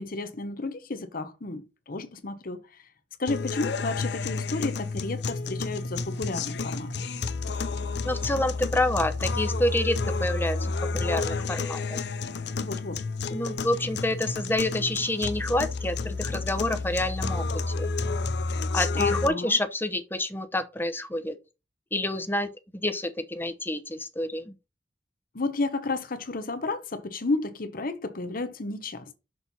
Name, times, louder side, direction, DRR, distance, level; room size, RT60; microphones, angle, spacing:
voice 1, 0.0-2.6 3.2-6.9 12.6-13.0 18.9-19.6 25.3-29.1, left 3 dB, 55° left, 1.0 m, -32 dB
sound 1, 3.3-19.3, left 3 dB, 70° left, 0.6 m, -30 dB
voice 2, 8.0-12.0 13.3-17.4 17.8-17.9 18.7-21.4 21.9-24.5, left 1 dB, 10° left, 0.9 m, -28 dB
6.3 x 4.4 x 5.5 m
head